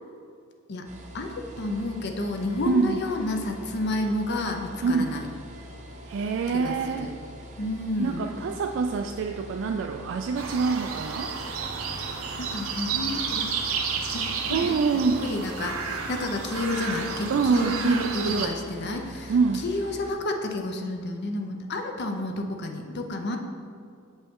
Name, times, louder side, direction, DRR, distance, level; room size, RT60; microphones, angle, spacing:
sound 1, 0.8-20.1, equal, 35° right, 0.8 m, -44 dB
voice 1, 1.1-5.3 6.6-7.1 7.6-8.4 12.4-13.7 14.1-14.7 15.2-23.4, left 2 dB, 55° left, 4 dB, 0.6 m, -30 dB
voice 2, 2.7-3.0 4.8-5.1 6.1-7.1 8.0-11.3 14.5-15.2 17.3-18.5 19.3-19.6, right 5 dB, 65° right, 4 dB, 0.3 m, -25 dB
sound 2, 10.3-18.5, right 5 dB, 85° right, 0.7 m, -31 dB
7.1 x 5.3 x 3.6 m, 2.4 s
head